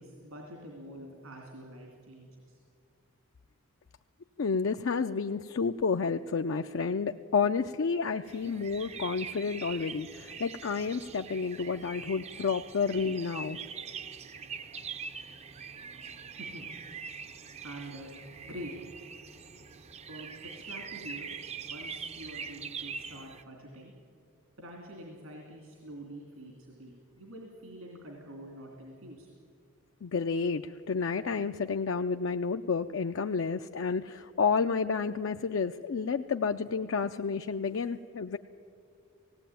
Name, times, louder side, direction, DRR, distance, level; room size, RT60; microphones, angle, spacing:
voice 1, 0.0-2.6 16.4-16.7 17.6-18.1 18.4-18.7 20.1-20.3 20.6-21.3 21.6-23.9 24.6-29.3, right 1 dB, 75° right, 0 dB, 2.8 m, -46 dB
voice 2, 4.4-13.6 30.0-38.4, left 5 dB, 60° left, 7 dB, 0.4 m, -30 dB
sound 1, 8.3-23.4, right 6 dB, 30° right, 0.5 m, -43 dB
18.0 x 17.0 x 9.1 m, 2.4 s
head